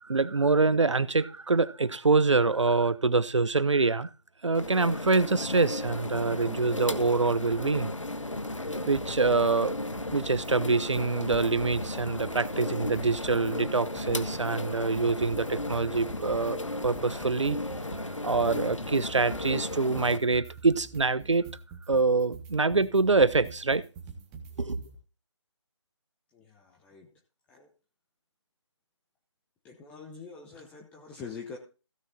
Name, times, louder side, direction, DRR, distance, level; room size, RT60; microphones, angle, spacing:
voice 1, 0.0-4.1 4.4-7.9 8.9-9.7 10.1-17.6 18.2-21.5 21.9-23.8 24.6-24.8, right 3 dB, 75° right, 0.9 m, -25 dB
sound 1, 4.5-20.2, left 2 dB, 90° left, 1.3 m, -35 dB
sound 2, 8.9-9.5 9.8-10.5 10.8-13.5 13.8-25.0, right 4 dB, 15° right, 1.2 m, -47 dB
voice 2, 26.3-27.1 27.5-27.7 29.6-31.6, left 5 dB, 10° left, 0.8 m, -44 dB
15.5 x 6.2 x 4.2 m
figure-of-eight pair, 150°, 15 cm